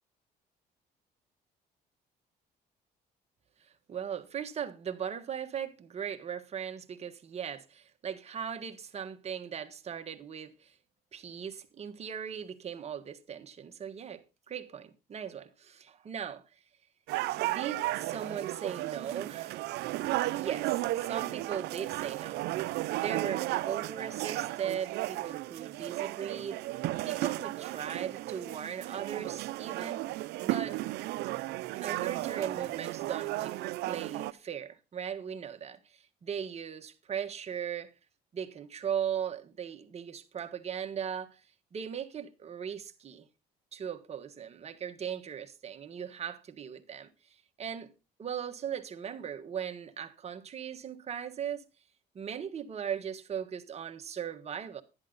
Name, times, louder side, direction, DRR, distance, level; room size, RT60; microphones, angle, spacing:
voice 1, 3.9-10.7 11.1-16.4 17.4-19.7 20.3-22.4 22.9-26.6 27.0-30.8 31.7-37.9 38.3-41.4 41.7-43.3 43.7-47.1 47.6-47.9 48.2-51.6 52.1-54.8, right 8 dB, 40° right, 1.4 m, -38 dB
sound 1, 17.1-34.3, right 17 dB, 80° right, 0.5 m, -34 dB
11.5 x 10.5 x 3.9 m
cardioid pair, 110°, 17 cm